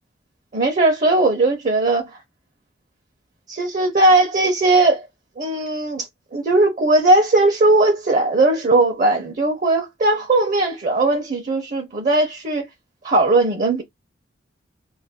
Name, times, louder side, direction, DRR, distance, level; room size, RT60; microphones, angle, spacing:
voice 1, 0.5-2.1 3.5-5.1 5.4-12.7 13.0-13.8, right 2 dB, 45° right, 0.7 m, -18 dB
2.6 x 2.3 x 3.5 m
head